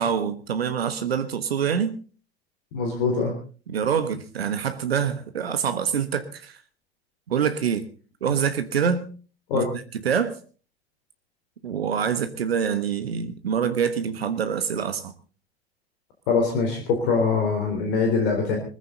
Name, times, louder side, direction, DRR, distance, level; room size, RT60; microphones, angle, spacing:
voice 1, 0.0-2.0 3.7-6.6 7.3-7.9 8.2-9.1 9.5-10.4 11.6-15.1, right 7 dB, 75° right, 1.3 m, -25 dB
voice 2, 2.7-3.3 9.5-9.7 16.3-18.6, left 4 dB, 55° left, 3.9 m, -23 dB
20.0 x 15.0 x 4.0 m
figure-of-eight pair, 80°, 31 cm